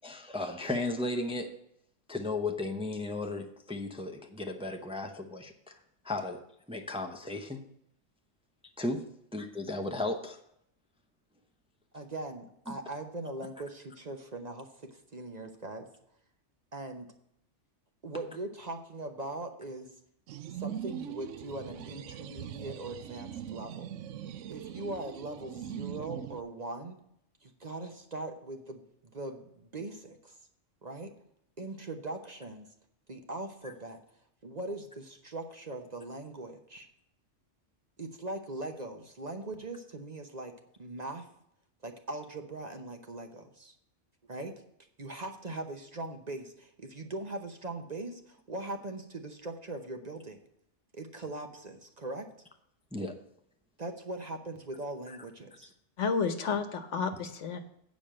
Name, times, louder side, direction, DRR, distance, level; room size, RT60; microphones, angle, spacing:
voice 1, 0.0-1.5 2.1-5.8 6.0-6.4 6.7-7.6 8.8-9.0 9.3-10.4 12.7-12.8 52.9-53.1 55.1-55.2, left 2 dB, 5° right, 4 dB, 0.7 m, -35 dB
voice 2, 11.9-15.9 16.7-17.1 18.0-20.0 20.5-23.9 24.5-27.0 27.4-30.4 30.8-31.1 31.6-32.7 33.1-34.0 34.4-36.9 38.0-41.3 41.8-43.8 44.3-44.6 45.0-50.4 50.9-52.3 53.8-55.7, right 2 dB, 40° right, 5 dB, 0.9 m, -40 dB
sound 1, 20.3-26.4, right 10 dB, 85° right, 0.9 m, -41 dB
voice 3, 56.0-57.6, left 5 dB, 75° left, 8 dB, 1.3 m, -31 dB
8.6 x 5.2 x 7.5 m, 0.73 s
omnidirectional pair, 1.3 m